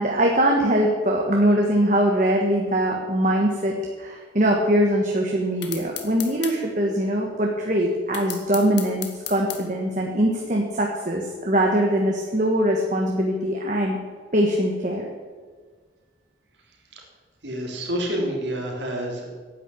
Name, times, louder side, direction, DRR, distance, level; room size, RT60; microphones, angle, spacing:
voice 1, 0.0-14.0 14.3-15.1, right 1 dB, 40° right, 0 dB, 1.5 m, -22 dB
sound 1, 5.6-6.6 8.1-9.6, left 9 dB, 75° left, 1.9 m, -33 dB
voice 2, 17.4-19.3, equal, 70° right, 0 dB, 3.5 m, -28 dB
11.0 x 9.4 x 8.5 m, 1.5 s
head